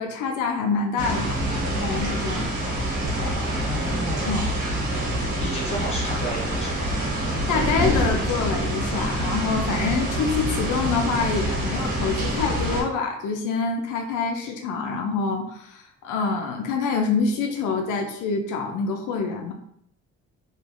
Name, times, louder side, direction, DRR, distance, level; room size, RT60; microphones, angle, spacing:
voice 1, 0.0-1.4 1.8-2.5 4.3-4.5 7.5-19.5, left 4 dB, 85° left, 3 dB, 0.5 m, -26 dB
sound 1, 1.0-12.8, right 1 dB, 75° right, 1.1 m, -26 dB
voice 2, 3.2-4.4 5.4-6.9 14.4-14.5, right 1 dB, 20° left, -4 dB, 1.1 m, -33 dB
3.0 x 2.3 x 2.4 m, 0.72 s
cardioid pair, 90°, 30 cm